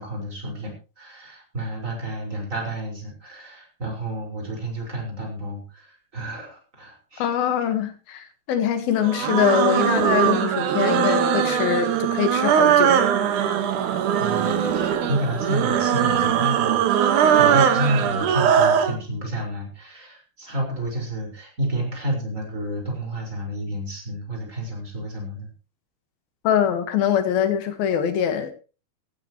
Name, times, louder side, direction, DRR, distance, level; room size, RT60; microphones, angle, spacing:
voice 1, 0.0-7.3 14.2-25.5, right 1 dB, 20° right, 0 dB, 5.4 m, -30 dB
voice 2, 7.2-13.0 26.4-28.5, left 9 dB, 70° left, 9 dB, 3.3 m, -23 dB
sound 1, 9.0-19.0, right 8 dB, 60° right, 2.6 m, -20 dB
16.0 x 15.0 x 3.1 m, 0.33 s
omnidirectional pair, 4.6 m